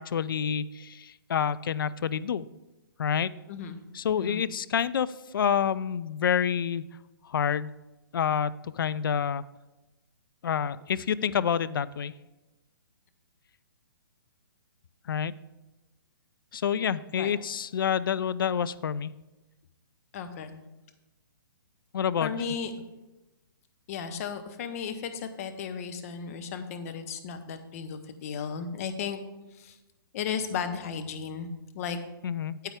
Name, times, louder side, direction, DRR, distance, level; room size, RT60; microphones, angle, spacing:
voice 1, 0.0-2.5 3.0-3.3 3.9-6.8 7.3-7.7 8.1-9.4 10.4-12.1 15.1-15.3 16.5-19.1 21.9-22.3 32.2-32.6, left 8 dB, 70° left, 17 dB, 0.4 m, -28 dB
voice 2, 4.2-4.5 17.1-17.3 20.1-20.6 22.2-22.7 23.9-29.2 29.6-29.7 30.1-31.5 31.7-32.0, left 6 dB, 40° left, 8 dB, 0.9 m, -35 dB
9.0 x 8.0 x 3.5 m, 1.1 s
hypercardioid pair, 135°, 12 cm